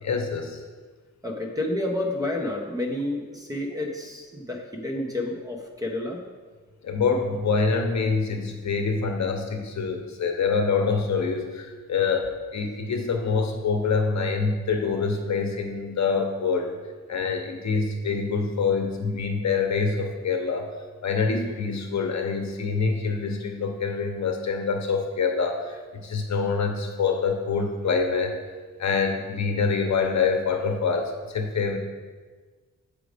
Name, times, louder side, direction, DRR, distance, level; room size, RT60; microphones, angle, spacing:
voice 1, 0.0-0.6 6.8-16.7 17.1-20.7 21.0-28.4 28.8-31.8, left 5 dB, 60° left, 4 dB, 0.8 m, -25 dB
voice 2, 1.2-6.2, left 1 dB, 10° right, 0 dB, 0.8 m, -30 dB
7.5 x 5.1 x 5.0 m, 1.4 s
wide cardioid pair, 175°, 32 cm